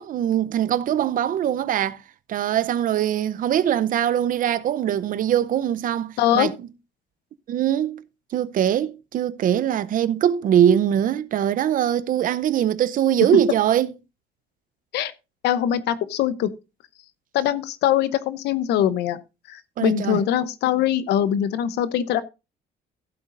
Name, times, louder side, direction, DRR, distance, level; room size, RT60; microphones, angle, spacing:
voice 1, 0.0-2.0 2.3-6.5 7.5-8.0 8.3-13.9 19.8-20.2, right 10 dB, 55° right, 0.7 m, -22 dB
voice 2, 6.2-6.5 14.9-15.1 15.4-16.5 17.3-19.2 19.5-22.2, left 11 dB, 80° left, 0.9 m, -22 dB
15.0 x 8.2 x 2.5 m
cardioid pair, 110°, 17 cm